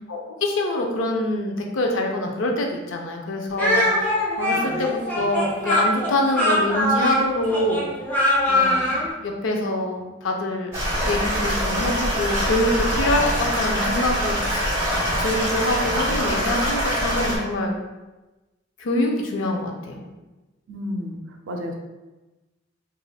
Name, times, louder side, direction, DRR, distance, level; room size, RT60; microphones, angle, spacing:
voice 1, 0.1-7.8 8.5-10.7 11.1-14.6 15.2-17.7 18.8-20.1, left 1 dB, 85° left, 1 dB, 0.5 m, -25 dB
Speech, 3.6-9.1, left 1 dB, 10° left, 0.7 m, -22 dB
voice 2, 4.5-4.8 20.7-21.2 21.5-21.7, left 1 dB, 90° right, 3 dB, 0.4 m, -32 dB
sound 1, 10.7-17.4, equal, 15° right, 1.0 m, -24 dB
3.2 x 2.5 x 2.3 m, 1.1 s
head